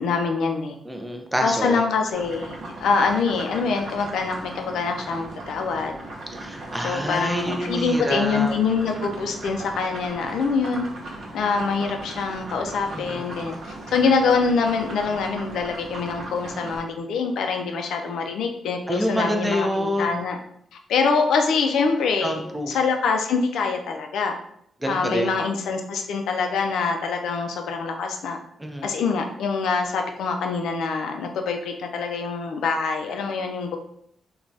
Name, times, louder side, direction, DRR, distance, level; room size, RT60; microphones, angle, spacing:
voice 1, 0.0-0.8 1.4-5.9 6.8-10.9 11.3-13.5 13.9-20.4 20.9-22.4 22.7-24.3 24.9-28.4 28.8-33.8, left 5 dB, 85° left, 4 dB, 0.3 m, -24 dB
voice 2, 0.9-1.8 6.3-8.5 12.9-13.4 18.9-20.2 22.2-22.8 24.8-25.4 28.6-28.9, equal, 5° right, 3 dB, 0.3 m, -27 dB
sound 1, 2.1-16.8, right 2 dB, 60° right, 0.5 m, -37 dB
3.2 x 2.2 x 2.5 m, 0.71 s
wide cardioid pair, 140°, 0 cm